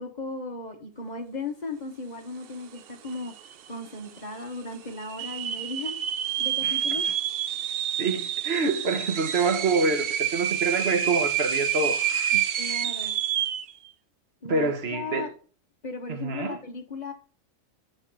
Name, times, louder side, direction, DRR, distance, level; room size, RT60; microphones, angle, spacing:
voice 1, 0.0-3.3 3.7-5.9 6.4-7.0 12.6-13.2 14.4-15.3 15.8-17.1, left 3 dB, 30° left, 1.3 m, -36 dB
sound 1, 2.8-2.9 3.1-3.7 4.2-4.3 5.0-13.7, right 9 dB, 65° right, 0.5 m, -28 dB
voice 2, 8.0-12.4 12.8-12.9 14.4-15.3 16.1-16.6, right 3 dB, 50° right, 1.1 m, -27 dB
6.5 x 5.0 x 6.0 m
omnidirectional pair, 1.5 m